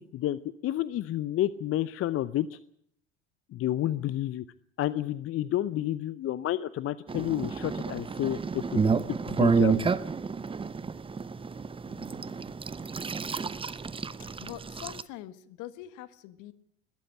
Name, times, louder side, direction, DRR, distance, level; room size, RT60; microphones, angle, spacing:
voice 1, 0.1-2.6 3.5-4.4 4.8-8.8 9.3-9.9, left 13 dB, 40° left, 16 dB, 0.7 m, -30 dB
sound 1, 7.1-15.0, right 5 dB, 15° right, 0.8 m, -30 dB
voice 2, 11.9-12.6 14.2-16.5, left 14 dB, 55° left, 13 dB, 1.6 m, -45 dB
20.0 x 13.0 x 10.0 m, 0.70 s
hypercardioid pair, 75°, 36 cm